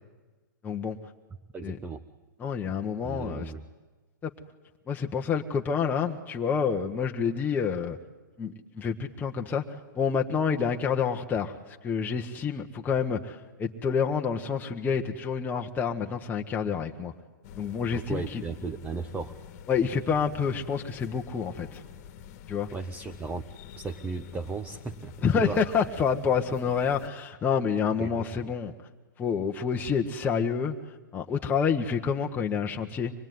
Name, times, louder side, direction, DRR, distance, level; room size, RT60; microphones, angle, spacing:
voice 1, 0.6-1.0 1.6-1.8 2.4-3.5 4.2-4.3 4.9-8.0 8.4-17.1 17.6-18.4 19.7-21.8 22.5-22.7 25.2-28.7 29.2-30.8 31.1-33.3, left 6 dB, 15° left, 1 dB, 1.2 m, -28 dB
voice 2, 1.5-2.0 3.0-3.6 17.9-19.4 22.7-23.4 23.7-25.6 28.0-28.5, right 4 dB, 15° right, 6 dB, 1.1 m, -36 dB
sound 1, 17.4-27.1, left 9 dB, 45° left, 1.7 m, -47 dB
25.0 x 20.0 x 9.4 m, 1.2 s
hypercardioid pair, 130°, 11 cm